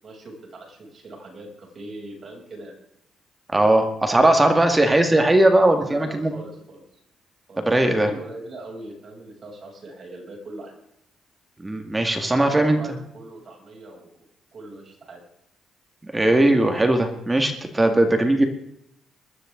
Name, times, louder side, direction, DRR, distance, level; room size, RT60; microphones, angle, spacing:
voice 1, 0.0-2.7 5.8-6.8 7.5-10.7 12.3-14.2 14.5-15.2, right 2 dB, 45° right, -1 dB, 7.4 m, -40 dB
voice 2, 3.5-6.3 7.6-8.1 11.6-12.8 16.1-18.5, right 1 dB, 15° right, 5 dB, 2.0 m, -19 dB
21.5 x 13.5 x 3.9 m, 0.76 s
cardioid pair, 90°, 0 cm